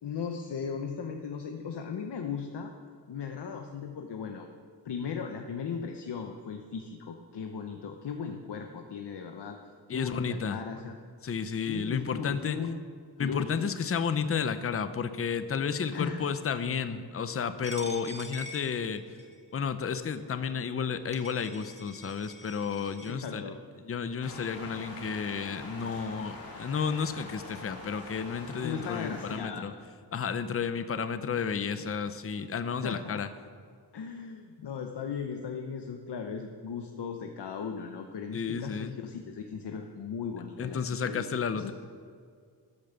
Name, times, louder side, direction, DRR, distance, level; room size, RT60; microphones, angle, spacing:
voice 1, 0.0-2.7 3.1-4.5 4.8-9.6 9.9-10.9 11.7-12.8 13.2-13.6 15.9-16.2 23.1-23.6 28.6-29.7 31.8-31.9 32.7-33.2 33.9-41.2 41.5-41.7, left 6 dB, 75° left, 4 dB, 0.9 m, -37 dB
voice 2, 9.9-10.6 11.2-12.6 13.2-19.0 19.5-23.5 23.9-29.7 30.1-33.3 38.3-39.0 40.6-41.7, left 6 dB, 35° left, 11 dB, 0.6 m, -32 dB
Coin (dropping), 17.6-19.4 20.0-20.2 20.8-20.9 21.1-23.1, equal, 15° right, 1.3 m, -45 dB
sound 1, 24.2-29.4, left 2 dB, 55° left, 3.0 m, -44 dB
14.0 x 8.6 x 6.8 m, 2.1 s
wide cardioid pair, 170°, 41 cm